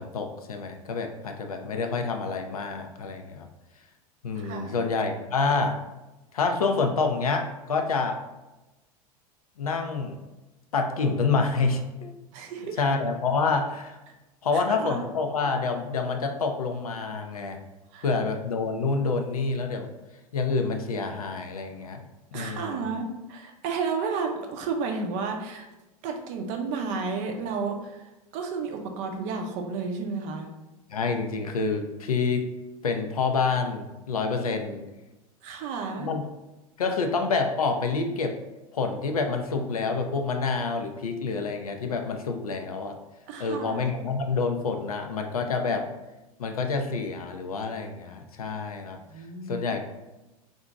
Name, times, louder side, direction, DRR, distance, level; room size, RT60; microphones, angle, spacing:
voice 1, 0.0-3.5 4.2-5.8 6.3-8.2 9.6-10.2 10.7-12.1 12.8-14.0 14.4-17.6 18.0-19.9 20.3-22.1 22.3-22.9 30.9-32.5 32.8-34.9 36.0-36.2 36.8-38.3 38.7-42.9 43.4-45.9 46.4-49.0 49.5-49.8, left 4 dB, 75° left, 5 dB, 0.4 m, -27 dB
voice 2, 4.4-4.8 12.3-12.9 14.5-15.1 17.9-18.1 22.3-25.7 26.0-30.5 35.4-36.1 43.3-43.8 49.1-49.6, right 4 dB, 40° right, 3 dB, 0.5 m, -32 dB
2.8 x 2.6 x 3.4 m, 1.0 s
figure-of-eight pair, 85°, 19 cm